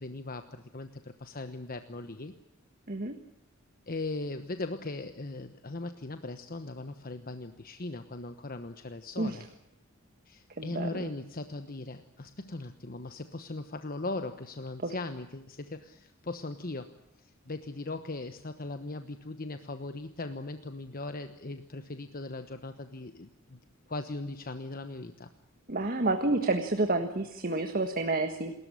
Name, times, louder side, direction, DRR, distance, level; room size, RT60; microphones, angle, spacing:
voice 1, 0.0-2.3 3.9-9.5 10.3-16.9 17.2-23.6 23.9-25.3, left 2 dB, 45° left, 8 dB, 1.2 m, -39 dB
voice 2, 10.6-11.1 14.8-14.9 25.7-28.5, right 2 dB, 45° right, 6 dB, 1.6 m, -29 dB
28.0 x 14.0 x 9.9 m, 0.84 s
head